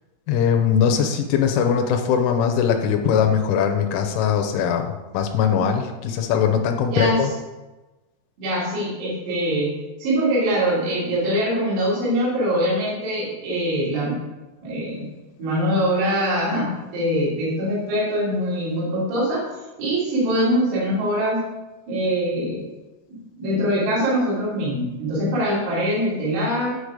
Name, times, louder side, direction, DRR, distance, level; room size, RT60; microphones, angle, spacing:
voice 1, 0.3-7.3, left 7 dB, 90° left, 4 dB, 3.2 m, -21 dB
voice 2, 6.9-7.3 8.4-14.2 14.6-15.1 15.4-19.5 19.8-21.4 21.9-22.6 23.1-26.8, equal, 60° right, -8 dB, 5.0 m, -23 dB
9.1 x 6.6 x 5.0 m, 1.1 s
omnidirectional pair, 5.7 m